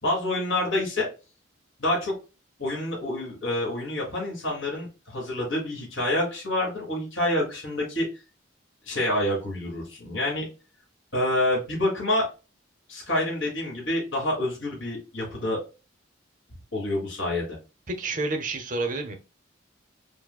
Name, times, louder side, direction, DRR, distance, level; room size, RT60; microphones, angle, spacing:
voice 1, 0.0-1.1 1.8-2.1 2.6-8.1 8.9-10.5 11.1-12.3 12.9-15.6 16.7-17.6, left 1 dB, 75° left, -2 dB, 1.8 m, -27 dB
voice 2, 17.9-19.1, right 2 dB, 40° right, 5 dB, 0.7 m, -29 dB
4.7 x 2.1 x 2.2 m, 0.30 s
head